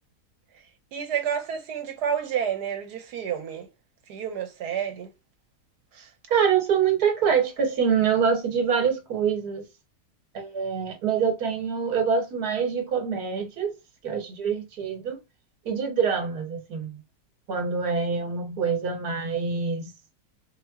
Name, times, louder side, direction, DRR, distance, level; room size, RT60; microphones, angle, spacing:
voice 1, 0.9-3.7 4.1-5.1 5.9-6.1, right 8 dB, 90° right, 1.4 m, -30 dB
voice 2, 6.3-9.6 10.3-13.7 14.0-15.2 15.6-17.0 17.5-19.9, right 6 dB, 70° right, 1.6 m, -25 dB
4.2 x 2.1 x 2.3 m
omnidirectional pair, 1.7 m